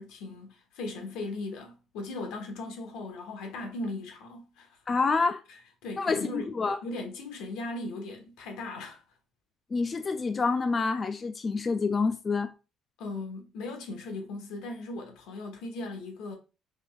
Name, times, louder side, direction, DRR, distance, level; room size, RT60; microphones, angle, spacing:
voice 1, 0.0-4.8 5.5-6.5 6.8-9.0 13.0-16.3, left 2 dB, 85° left, 1.3 m, -38 dB
voice 2, 4.9-5.4 6.0-6.8 9.7-12.5, left 4 dB, 30° left, 0.3 m, -27 dB
5.4 x 3.4 x 2.3 m
cardioid pair, 105°, 0 cm